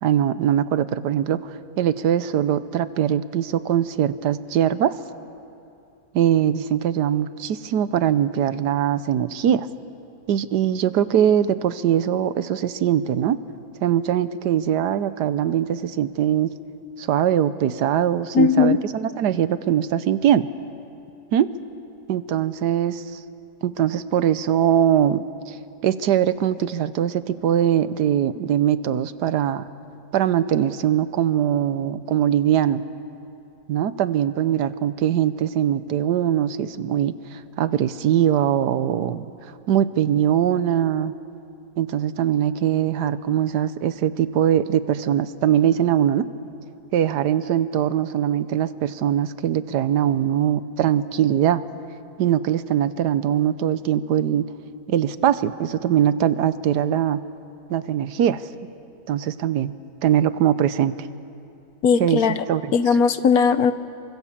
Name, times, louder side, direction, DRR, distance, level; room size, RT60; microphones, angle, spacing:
voice 1, 0.0-4.9 6.1-9.7 10.3-13.4 13.8-16.5 17.0-20.5 21.3-21.5 22.1-23.2 23.6-25.6 25.8-29.6 30.1-32.8 33.7-39.3 39.7-41.1 41.8-46.2 46.9-51.6 52.2-54.5 54.9-57.2 57.7-58.5 59.1-59.7 60.0-61.1 62.0-62.2 62.5-62.7, right 10 dB, 90° right, 14 dB, 1.4 m, -21 dB
voice 2, 18.3-18.8 61.8-62.4 62.7-63.7, left 6 dB, 65° left, 12 dB, 1.3 m, -18 dB
28.0 x 24.5 x 7.3 m, 2.7 s
omnidirectional pair, 1.7 m